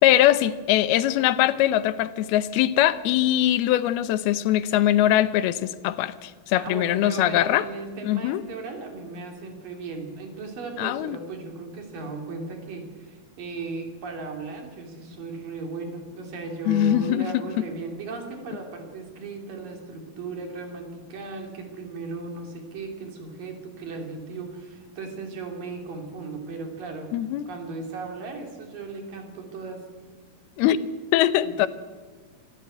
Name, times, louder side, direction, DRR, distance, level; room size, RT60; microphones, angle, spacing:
voice 1, 0.0-7.6 8.0-8.4 10.8-11.2 16.7-17.3 27.1-27.5 30.6-30.8 31.1-31.7, left 13 dB, 85° left, 14 dB, 2.7 m, -22 dB
voice 2, 6.5-27.1 27.5-29.9 31.4-31.7, right 3 dB, 65° right, 3 dB, 4.6 m, -36 dB
26.0 x 13.0 x 9.3 m, 1.5 s
omnidirectional pair, 4.4 m